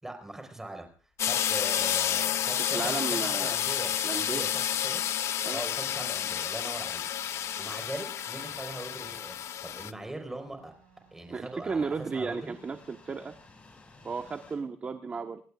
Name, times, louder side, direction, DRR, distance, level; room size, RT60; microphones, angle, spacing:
voice 1, 0.0-0.9 1.2-5.0 5.5-7.0 7.6-9.5 9.7-10.7 11.1-12.6, right 2 dB, 10° right, 4 dB, 4.5 m, -40 dB
sound 1, 0.9-14.6, left 3 dB, 25° left, 5.8 m, -61 dB
sound 2, 1.2-9.9, left 10 dB, 60° left, 0.7 m, -30 dB
voice 2, 2.7-3.5 4.0-4.5 5.4-5.6 11.3-13.3 14.0-15.4, right 4 dB, 30° right, 5 dB, 1.2 m, -34 dB
Wind instrument woodwind instrument, 7.1-13.6, right 10 dB, 85° right, 4.7 m, -63 dB
27.0 x 18.5 x 2.5 m, 0.41 s
cardioid pair, 155°, 5 cm